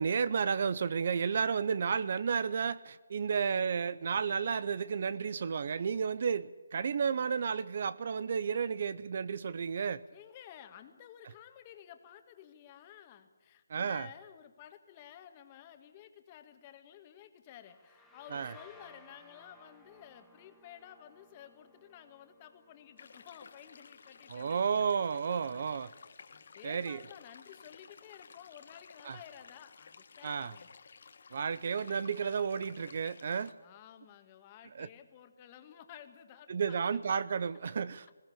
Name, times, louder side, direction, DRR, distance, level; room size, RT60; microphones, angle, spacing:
voice 1, 0.0-10.0 13.7-14.1 18.3-18.5 24.3-25.9 26.6-27.0 29.1-29.2 30.2-30.5 31.3-33.5 34.8-34.9 36.5-38.1, right 6 dB, 45° right, 18 dB, 0.6 m, -32 dB
voice 2, 10.1-24.6 25.2-25.9 26.3-30.7 33.3-37.1, left 10 dB, 25° left, 8 dB, 1.7 m, -53 dB
sound 1, 17.6-25.1, left 1 dB, ahead, 1.9 m, -61 dB
sound 2, 23.0-33.5, left 5 dB, 55° left, 1.4 m, -55 dB
21.0 x 16.5 x 8.7 m, 1.3 s
hypercardioid pair, 165°, 0 cm